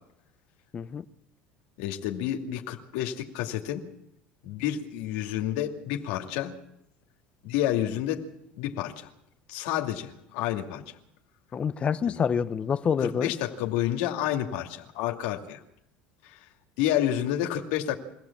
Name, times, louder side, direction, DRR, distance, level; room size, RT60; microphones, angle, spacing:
voice 1, 0.7-1.0 11.5-13.3, left 7 dB, 30° left, 1.0 m, -27 dB
voice 2, 1.8-3.8 4.4-6.5 7.4-8.3 8.6-9.1 9.5-10.8 12.1-12.2 13.0-15.6 16.8-18.0, left 12 dB, 80° left, 2.4 m, -29 dB
24.0 x 16.5 x 7.3 m
supercardioid pair, 120°, 4 cm